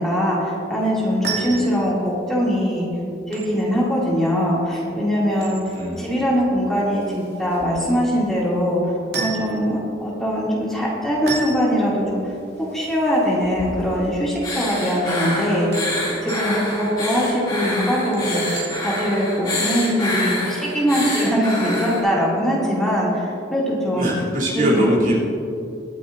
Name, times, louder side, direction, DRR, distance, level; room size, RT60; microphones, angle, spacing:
voice 1, 0.0-2.9 3.3-5.6 6.0-8.8 9.2-24.1 24.6-24.9, equal, 5° left, -7 dB, 2.7 m, -22 dB
sound 1, 1.0-19.2, right 3 dB, 60° right, 2.7 m, -36 dB
voice 2, 5.7-6.4 23.9-25.2, equal, 45° right, -6 dB, 3.2 m, -22 dB
sound 2, 14.4-22.0, left 1 dB, 25° left, 2.8 m, -27 dB
23.0 x 10.0 x 2.7 m, 2.6 s
head